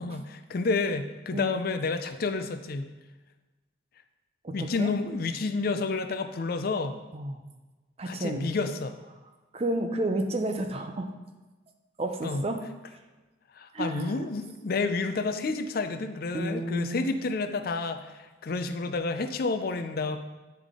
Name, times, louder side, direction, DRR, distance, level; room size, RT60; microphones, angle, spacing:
voice 1, 0.0-2.9 4.5-7.0 8.0-8.9 12.2-12.4 13.5-20.2, left 3 dB, 50° left, 9 dB, 0.4 m, -30 dB
voice 2, 4.4-4.9 7.1-7.4 8.0-8.5 9.5-11.1 12.0-12.6 13.7-14.2 16.3-17.1, right 1 dB, 30° right, 5 dB, 0.5 m, -31 dB
9.2 x 3.4 x 3.7 m, 1.2 s
head